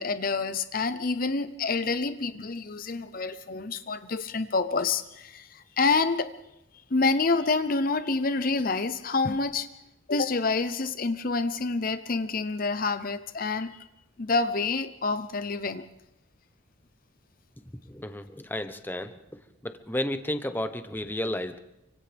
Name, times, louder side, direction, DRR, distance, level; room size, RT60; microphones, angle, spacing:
voice 1, 0.0-6.3 6.9-9.7 10.1-13.9 14.2-15.9, left 3 dB, 45° left, 11 dB, 0.7 m, -27 dB
voice 2, 17.9-19.1 19.6-21.6, left 1 dB, 10° left, 8 dB, 1.0 m, -32 dB
30.0 x 25.0 x 3.5 m, 0.87 s
head